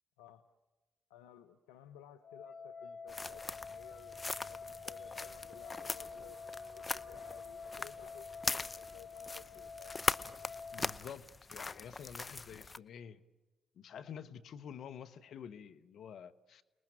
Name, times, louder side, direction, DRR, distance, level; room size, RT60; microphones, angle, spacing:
voice 1, 1.1-4.2 4.5-10.2, left 10 dB, 90° left, 8 dB, 0.9 m, -57 dB
sound 1, 2.2-10.9, left 5 dB, 50° left, 2.5 m, -48 dB
sound 2, 3.1-12.8, left 3 dB, 30° left, 0.8 m, -41 dB
sound 3, 5.4-10.6, right 2 dB, 25° right, 3.4 m, -65 dB
voice 2, 10.7-11.3 11.5-13.2 13.7-16.6, left 8 dB, 70° left, 10 dB, 1.2 m, -48 dB
30.0 x 20.5 x 8.9 m, 1.2 s
hypercardioid pair, 45°, 0 cm